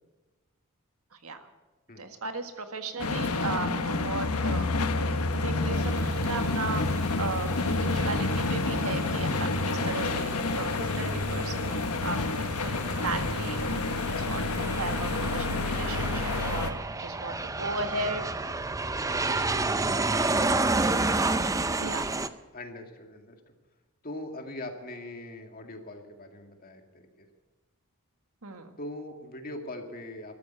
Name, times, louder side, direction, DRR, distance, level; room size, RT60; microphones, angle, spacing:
voice 1, 2.0-4.7 5.3-5.9 6.2-13.6 14.0-18.6 19.2-19.7 21.8-22.1 28.4-28.7, right 3 dB, 75° right, 6 dB, 1.8 m, -36 dB
sound 1, 3.0-16.7, left 3 dB, 90° left, 1.3 m, -29 dB
sound 2, 5.7-16.4, right 4 dB, 45° right, 4.1 m, -47 dB
Aircraft, 12.1-22.3, right 3 dB, 15° right, 0.6 m, -30 dB
voice 2, 21.3-21.7 22.5-23.4 24.0-27.3 28.8-30.3, left 1 dB, 40° left, 4 dB, 2.1 m, -41 dB
13.5 x 13.0 x 8.1 m, 1.2 s
head